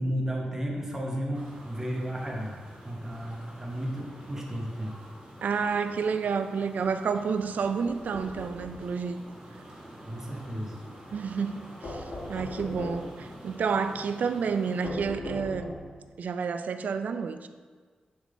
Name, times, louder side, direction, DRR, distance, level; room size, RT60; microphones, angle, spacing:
voice 1, 0.0-4.9 10.1-10.8, equal, 15° right, -2 dB, 0.9 m, -33 dB
sound 1, 1.3-14.9, right 1 dB, 35° right, 1.6 m, -48 dB
voice 2, 5.4-9.2 11.1-15.7 16.2-17.5, right 5 dB, 75° right, 10 dB, 0.3 m, -30 dB
sound 2, 7.9-8.9 11.8-13.2 14.8-16.0, left 1 dB, 60° left, 1.5 m, -38 dB
7.2 x 3.8 x 3.7 m, 1.5 s
wide cardioid pair, 90°, 3 cm